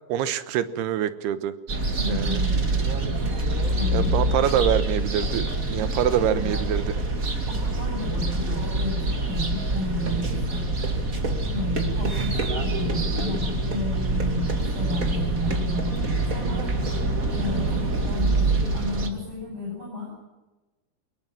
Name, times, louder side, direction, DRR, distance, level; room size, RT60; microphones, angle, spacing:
voice 1, 0.1-1.5 2.1-2.4 3.9-7.0 10.1-10.4, right 10 dB, 85° right, 13 dB, 3.1 m, -25 dB
sound 1, 1.7-19.1, right 2 dB, 30° right, 2.0 m, -25 dB
voice 2, 2.0-2.9 3.7-4.1 6.3-6.5 7.5-10.6 11.5-15.9 16.2-16.7 17.3-20.3, left 1 dB, 65° right, -2 dB, 9.8 m, -32 dB
23.0 x 20.5 x 7.6 m, 1.1 s
omnidirectional pair, 4.5 m